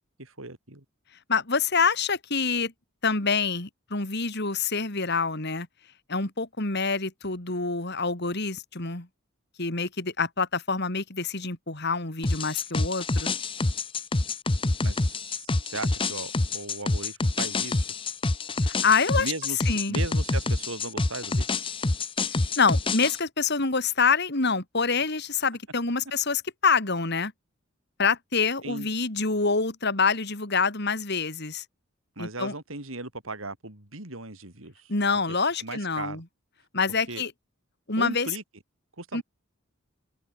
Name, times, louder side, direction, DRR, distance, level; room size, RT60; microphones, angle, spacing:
voice 1, 0.2-0.8 14.8-17.9 19.2-21.5 28.6-28.9 32.2-34.9 35.6-36.2 37.1-37.2 38.0-38.4 39.0-39.2, right 2 dB, 75° right, 5.0 m, -37 dB
voice 2, 1.3-2.7 3.0-5.7 6.1-9.1 9.6-13.3 18.6-19.3 19.7-20.0 22.6-27.3 28.0-31.6 32.2-32.5 34.9-36.2 36.7-37.3 37.9-38.3 39.1-39.2, left 4 dB, 55° left, 3.1 m, -26 dB
sound 1, 12.2-23.2, left 2 dB, 25° left, 0.8 m, -27 dB
head